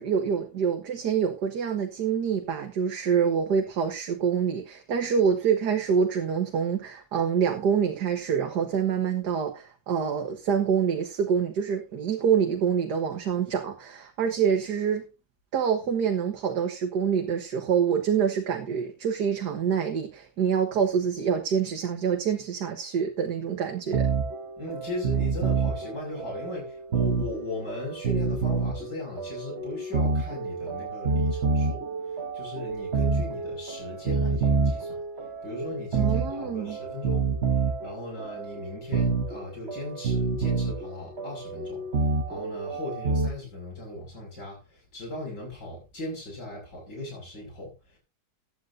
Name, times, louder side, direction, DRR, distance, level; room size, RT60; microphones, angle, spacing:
voice 1, 0.0-15.0 15.5-24.1 35.9-36.8, right 7 dB, 75° right, 1.9 m, -26 dB
sound 1, 23.9-43.3, right 4 dB, 40° right, 1.4 m, -28 dB
voice 2, 24.6-31.8 32.3-35.0 35.4-37.3 37.8-41.9 42.3-48.0, left 2 dB, 80° left, 7.0 m, -38 dB
15.5 x 10.5 x 2.7 m
omnidirectional pair, 1.8 m